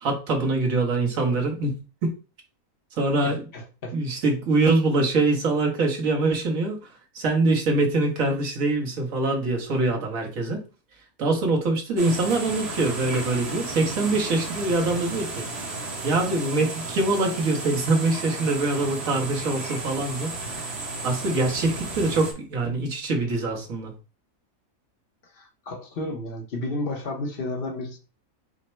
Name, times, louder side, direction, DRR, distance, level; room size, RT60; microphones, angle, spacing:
voice 1, 0.0-1.7 2.0-2.1 3.0-3.4 3.9-6.9 7.1-10.6 11.2-20.7 21.0-23.9, right 2 dB, 70° right, 1.6 m, -24 dB
voice 2, 3.2-4.0 25.3-28.0, left 2 dB, 45° left, 1.0 m, -32 dB
sound 1, 12.0-22.3, right 3 dB, 50° right, 1.2 m, -34 dB
5.1 x 2.1 x 4.3 m
omnidirectional pair, 1.5 m